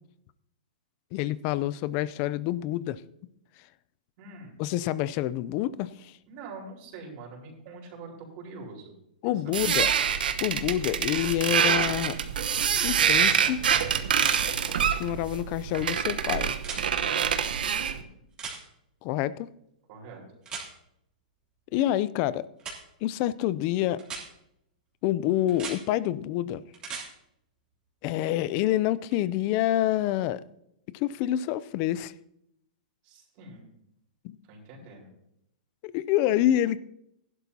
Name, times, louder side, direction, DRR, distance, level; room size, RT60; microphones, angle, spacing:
voice 1, 1.1-3.0 4.6-6.1 9.2-9.9 10.4-12.2 12.8-13.6 15.0-16.6 19.0-19.5 21.7-22.5 23.0-24.0 25.0-26.6 28.0-30.4 30.9-32.1 34.2-34.4 35.8-36.8, left 13 dB, 35° left, 0.5 m, -27 dB
voice 2, 4.2-4.6 6.3-8.9 9.2-9.5 17.8-18.1 19.9-20.2 33.0-33.7 34.5-35.1, right 3 dB, 35° right, 4.6 m, -44 dB
sound 1, 9.5-18.0, right 8 dB, 85° right, 1.0 m, -26 dB
sound 2, 12.6-12.7 14.1-14.4 16.6-16.8 18.4-18.6 20.4-20.7 22.6-22.8 24.0-24.2 25.5-25.8 26.7-27.1 29.1-29.2, right 5 dB, 20° right, 2.9 m, -37 dB
16.0 x 11.5 x 2.8 m
hypercardioid pair, 155°, 5 cm